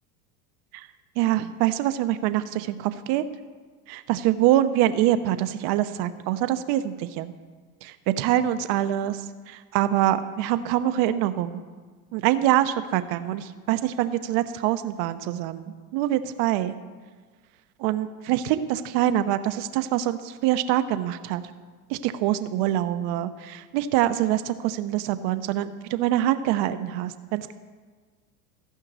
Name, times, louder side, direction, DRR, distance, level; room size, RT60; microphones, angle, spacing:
voice 1, 1.2-3.2 3.9-7.3 7.8-9.2 9.5-11.6 12.1-16.7 17.8-21.4 21.9-27.5, right 13 dB, 55° right, 11 dB, 1.0 m, -25 dB
15.5 x 5.8 x 8.1 m, 1.5 s
supercardioid pair, 105°, 45 cm